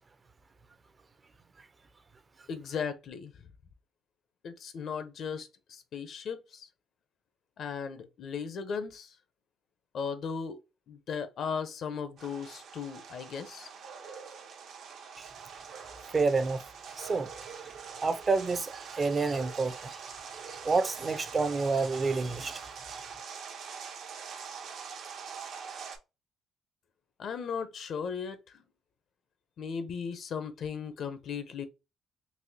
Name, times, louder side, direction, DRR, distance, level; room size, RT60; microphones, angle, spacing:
voice 1, 2.5-3.3 4.4-6.7 7.6-9.2 9.9-10.6 10.9-13.7 27.2-28.4 29.6-31.7, left 6 dB, 65° left, 0.6 m, -36 dB
sound 1, 12.2-26.0, right 6 dB, 70° right, 0.8 m, -44 dB
voice 2, 16.1-16.6 17.0-17.6 18.0-20.0 20.5-23.0, right 4 dB, 35° right, 0.5 m, -29 dB
4.1 x 2.3 x 2.7 m
cardioid pair, 90°, 0 cm